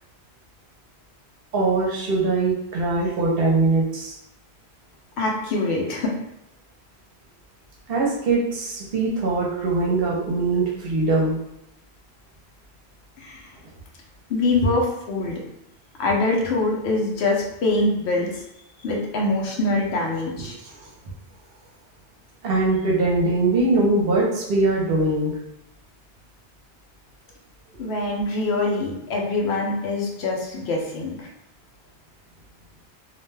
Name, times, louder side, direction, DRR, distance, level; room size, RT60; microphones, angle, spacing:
voice 1, 1.5-4.2 7.9-11.4 22.4-25.3, right 3 dB, 65° right, -2 dB, 0.8 m, -22 dB
voice 2, 5.2-6.1 13.2-13.4 14.3-15.4 16.0-18.4 18.8-20.6 27.8-31.2, left 2 dB, 85° left, -1 dB, 0.9 m, -24 dB
2.5 x 2.2 x 3.2 m, 0.82 s
omnidirectional pair, 1.1 m